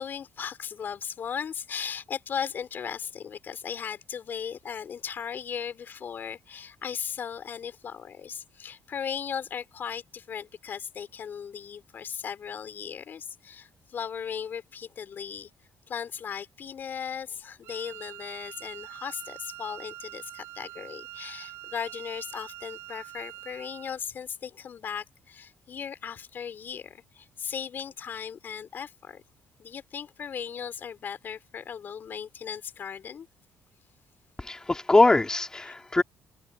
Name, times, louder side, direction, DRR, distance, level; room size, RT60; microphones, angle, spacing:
voice 1, 0.0-15.5 15.9-29.2 29.6-33.3 35.7-35.8, left 7 dB, 50° left, 3.6 m, -37 dB
Wind instrument woodwind instrument, 17.6-24.0, right 15 dB, 85° right, 7.6 m, -44 dB
voice 2, 34.4-36.0, left 2 dB, 15° left, 3.3 m, -22 dB
cardioid pair, 105°, 4 cm